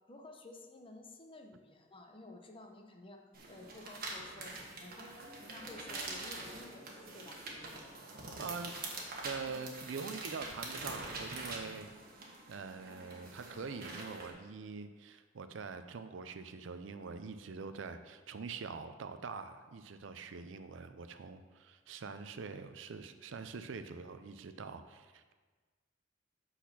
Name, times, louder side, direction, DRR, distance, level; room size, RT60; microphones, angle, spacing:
voice 1, 0.1-3.2 3.5-5.1 5.4-7.4, left 2 dB, 30° left, 3 dB, 0.8 m, -52 dB
sound 1, 3.3-14.3, right 2 dB, 50° right, 1.4 m, -45 dB
voice 2, 8.4-8.7 9.2-11.9 12.3-25.3, right 5 dB, 75° right, 10 dB, 0.5 m, -44 dB
8.3 x 4.2 x 5.9 m, 1.4 s
head